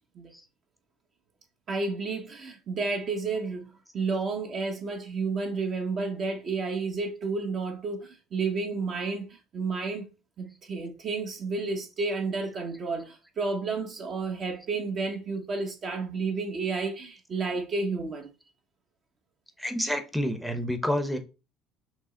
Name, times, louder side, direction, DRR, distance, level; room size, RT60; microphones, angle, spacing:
voice 1, 1.7-10.1 10.4-18.3, right 4 dB, 45° right, 1.0 m, -31 dB
voice 2, 19.6-21.2, equal, ahead, 0.8 m, -28 dB
6.0 x 2.1 x 3.8 m
supercardioid pair, 105°, 0 cm